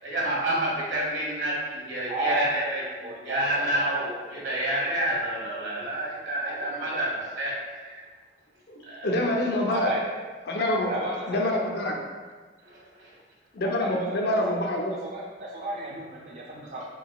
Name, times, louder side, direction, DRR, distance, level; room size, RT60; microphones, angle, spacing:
voice 1, 0.0-7.5 8.9-9.1 12.6-13.1, right 1 dB, 80° right, -5 dB, 1.2 m, -29 dB
voice 2, 2.1-2.7 3.0-4.5 6.5-7.0 7.8-8.0 9.7-10.1 10.9-11.5 13.6-16.8, right 1 dB, 45° right, -3 dB, 0.4 m, -33 dB
voice 3, 8.7-9.9 10.5-10.9 11.3-12.1 13.5-15.0, left 1 dB, 60° left, 1 dB, 0.5 m, -26 dB
3.9 x 3.8 x 2.3 m, 1.4 s
head